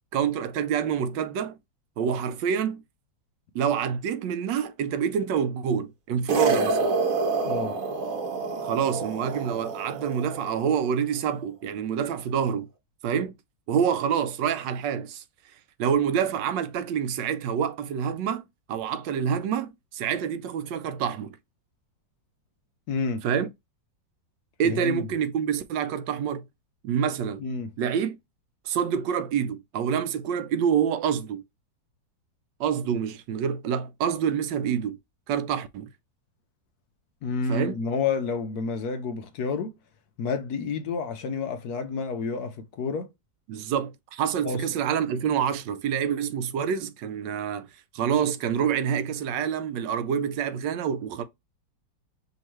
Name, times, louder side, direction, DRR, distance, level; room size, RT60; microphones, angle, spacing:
voice 1, 0.1-1.6 2.0-2.8 3.5-6.9 8.6-12.7 13.0-13.3 13.7-15.2 15.8-21.4 23.2-23.5 24.6-26.4 26.8-27.4 27.8-28.2 28.6-31.4 32.6-35.0 35.3-35.9 37.5-37.8 43.5-47.7 47.9-51.2, right 8 dB, 75° right, 1.3 m, -27 dB
sound 1, 6.3-10.7, right 4 dB, 55° right, 1.2 m, -27 dB
voice 2, 7.4-7.8 22.9-23.3 24.6-25.1 27.4-27.7 37.2-39.7 40.2-43.1 44.4-44.6, left 5 dB, 70° left, 1.1 m, -29 dB
5.3 x 2.8 x 3.0 m
omnidirectional pair, 2.0 m